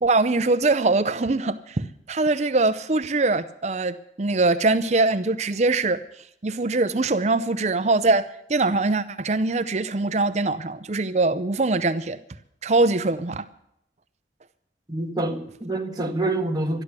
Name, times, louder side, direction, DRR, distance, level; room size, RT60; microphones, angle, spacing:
voice 1, 0.0-6.0 6.4-8.2 8.5-12.2 12.6-13.4, right 3 dB, 40° right, 0.6 m, -22 dB
voice 2, 14.9-16.8, right 2 dB, 20° right, 1.5 m, -26 dB
13.0 x 11.5 x 8.2 m
head